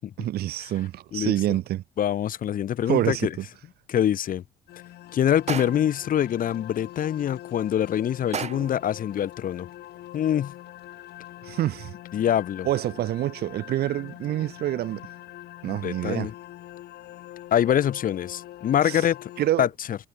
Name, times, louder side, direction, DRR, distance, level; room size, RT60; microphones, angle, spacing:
voice 1, 0.2-1.8 2.9-3.5 11.4-11.9 12.7-15.0 15.6-16.3 18.8-19.1 19.4-19.7, right 14 dB, 70° right, 1.8 m, -27 dB
voice 2, 2.0-3.3 3.9-4.4 5.1-9.7 10.1-10.5 12.1-12.7 15.7-16.3 17.5-19.3 19.6-20.0, left 10 dB, 55° left, 5.5 m, -25 dB
sound 1, 4.7-19.5, left 14 dB, 75° left, 6.3 m, -44 dB
sound 2, 5.5-6.0 8.3-8.8, right 7 dB, 40° right, 2.8 m, -32 dB
cardioid pair, 110°, 17 cm